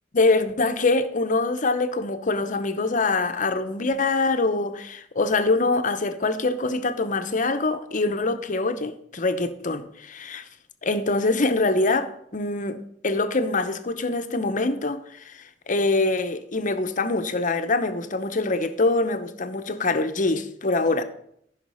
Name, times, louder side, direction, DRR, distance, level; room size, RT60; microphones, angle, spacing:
voice 1, 0.1-10.5 10.8-21.0, left 3 dB, 45° left, 0.9 m, -24 dB
13.5 x 5.9 x 5.6 m
head